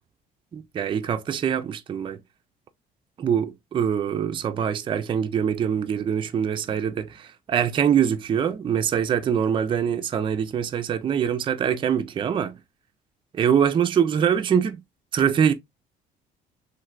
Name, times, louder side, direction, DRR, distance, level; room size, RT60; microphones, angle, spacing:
voice 1, 0.5-2.2 3.2-12.6 13.3-14.8 15.1-15.5, right 8 dB, 30° right, 0.3 m, -24 dB
3.1 x 2.5 x 2.3 m
cardioid pair, 110°, 17 cm